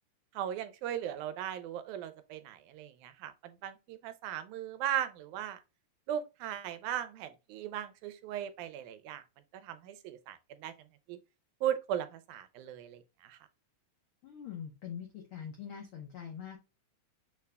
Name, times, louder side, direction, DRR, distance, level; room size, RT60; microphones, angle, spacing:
voice 1, 0.4-5.6 6.1-9.2 9.5-10.7 11.1-11.2 11.6-13.4, right 10 dB, 90° right, 2.0 m, -37 dB
voice 2, 14.2-16.6, left 8 dB, 85° left, 1.1 m, -43 dB
6.3 x 2.2 x 3.3 m
omnidirectional pair, 3.4 m